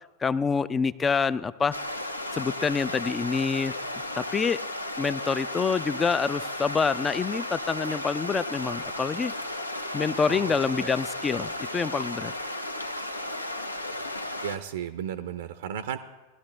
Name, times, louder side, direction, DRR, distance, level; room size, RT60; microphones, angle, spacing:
voice 1, 0.2-1.7 2.3-3.7 4.1-4.6 5.0-9.3 9.9-12.3, left 5 dB, 20° left, 17 dB, 0.4 m, -26 dB
sound 1, 1.7-14.6, left 1 dB, 85° left, 0.8 m, -34 dB
voice 2, 10.3-11.0 14.4-16.0, right 9 dB, 60° right, 11 dB, 0.6 m, -34 dB
19.0 x 11.5 x 3.2 m, 1.2 s
figure-of-eight pair, 90°, 0 cm